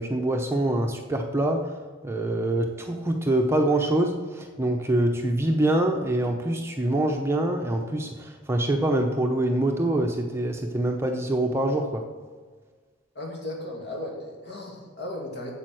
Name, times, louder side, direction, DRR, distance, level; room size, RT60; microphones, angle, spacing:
voice 1, 0.0-1.7 2.0-12.0, right 1 dB, 10° right, 2 dB, 0.7 m, -25 dB
voice 2, 13.1-15.5, left 1 dB, 55° left, -1 dB, 2.4 m, -35 dB
8.9 x 7.7 x 6.3 m, 1.5 s
head